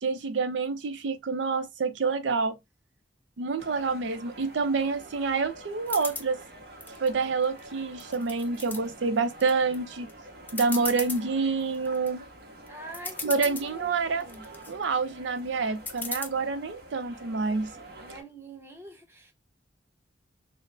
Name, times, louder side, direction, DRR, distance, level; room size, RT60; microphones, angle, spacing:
voice 1, 0.0-2.5 3.4-6.4 7.0-10.1 10.5-12.2 13.2-14.2 14.7-17.7, right 4 dB, 80° right, 0.5 m, -27 dB
sound 1, 3.6-18.2, right 1 dB, 60° right, 1.0 m, -48 dB
sound 2, 5.9-6.3 6.8-7.6 8.0-8.8 9.3-9.8 10.1-10.2 10.5-11.2 11.7-12.1 12.7-12.8 12.9-13.7 14.2-14.7 15.9-16.3, left 3 dB, 10° left, 0.5 m, -36 dB
voice 2, 12.7-13.3 13.6-14.5 18.0-19.3, right 1 dB, 15° right, 0.9 m, -45 dB
3.9 x 2.1 x 3.1 m
head